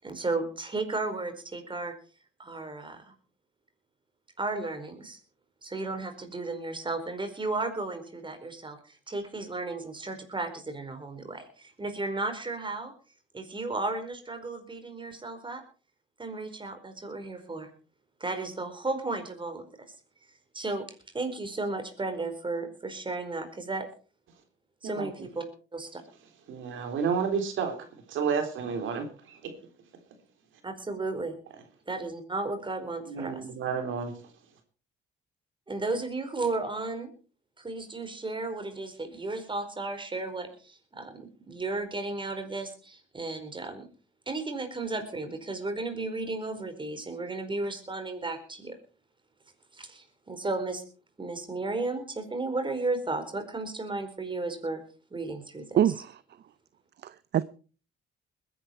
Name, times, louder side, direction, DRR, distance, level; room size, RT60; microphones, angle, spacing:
voice 1, 0.0-1.9 2.4-3.1 4.4-5.2 5.6-12.9 13.3-15.6 16.2-17.7 18.2-19.7 20.5-20.8 21.1-23.9 24.8-25.4 25.7-26.0 30.6-31.4 31.9-33.4 35.7-37.1 37.6-43.8 44.3-48.8 49.7-50.8 51.2-54.8 55.1-55.8, right 3 dB, 25° right, 4.6 m, -34 dB
voice 2, 26.5-27.7 28.1-29.5 33.1-34.1, right 6 dB, 80° right, 3.6 m, -30 dB
voice 3, 55.8-56.2 57.0-57.4, right 10 dB, 60° right, 0.7 m, -25 dB
21.0 x 11.0 x 4.6 m
cardioid pair, 90°, 20 cm